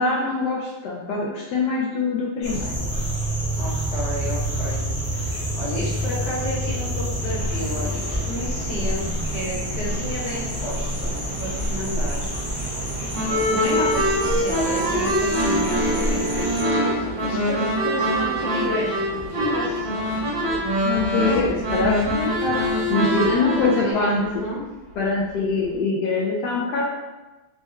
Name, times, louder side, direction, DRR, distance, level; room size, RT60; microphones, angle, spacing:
voice 1, 0.0-3.0 20.8-24.4 25.0-26.8, left 3 dB, 75° left, -4 dB, 1.0 m, -24 dB
sound 1, 2.4-16.6, equal, 30° left, 1.0 m, -28 dB
voice 2, 3.6-4.8 5.1-12.3 13.5-20.0 23.2-24.6, equal, 55° left, -7 dB, 1.6 m, -31 dB
sound 2, 7.2-25.8, right 1 dB, 75° right, 1.7 m, -38 dB
sound 3, 13.1-23.9, equal, 55° right, 0.6 m, -24 dB
4.1 x 2.1 x 3.4 m, 1.1 s
omnidirectional pair, 2.2 m